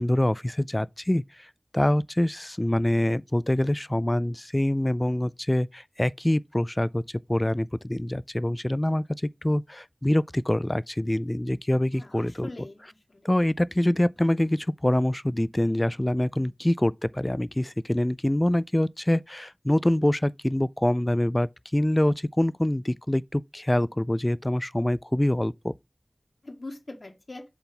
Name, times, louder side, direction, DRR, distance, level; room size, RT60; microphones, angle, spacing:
voice 1, 0.0-7.0 7.3-9.0 9.4-12.5 13.2-25.7, left 1 dB, 25° left, 0.3 m, -25 dB
voice 2, 11.9-13.3 26.4-27.4, left 2 dB, 75° left, 1.8 m, -42 dB
7.0 x 4.0 x 3.8 m
wide cardioid pair, 55°, 0 cm